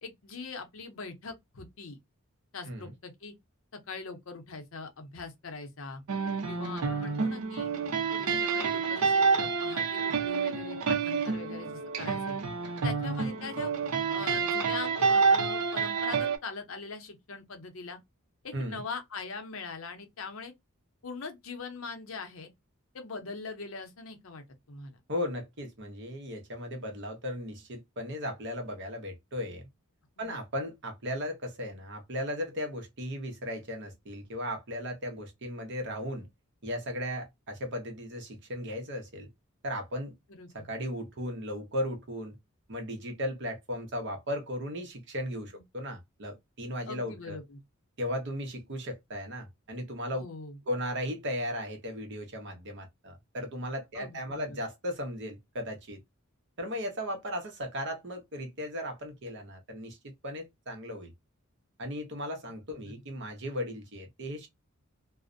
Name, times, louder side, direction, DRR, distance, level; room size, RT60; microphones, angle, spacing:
voice 1, 0.0-2.0 2.5-3.3 3.7-6.0 6.5-7.7 8.1-12.4 12.8-13.7 14.1-18.0 18.4-20.5 21.0-22.5 22.9-25.0 30.2-30.4 40.3-40.7 46.9-47.6 50.1-50.6 53.9-54.6, left 4 dB, 70° left, 0.6 m, -42 dB
sound 1, 6.1-16.4, right 5 dB, 85° right, 0.5 m, -28 dB
voice 2, 18.5-18.8 25.1-29.6 30.2-36.3 36.6-39.3 39.6-40.1 40.5-42.4 42.7-47.4 48.0-50.2 50.7-56.0 56.6-61.1 61.8-64.5, equal, 55° right, 0.8 m, -36 dB
2.4 x 2.0 x 2.5 m
head